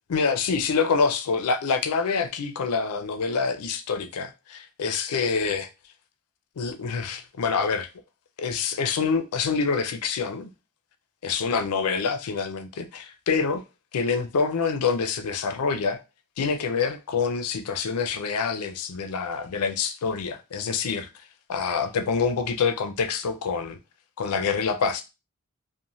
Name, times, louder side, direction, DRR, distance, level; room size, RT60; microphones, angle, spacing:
voice 1, 0.1-5.7 6.6-7.9 8.4-10.5 11.2-13.6 13.9-16.0 16.4-21.2 21.5-23.8 24.2-25.0, left 5 dB, 90° left, 0.4 m, -26 dB
3.0 x 2.1 x 2.6 m
head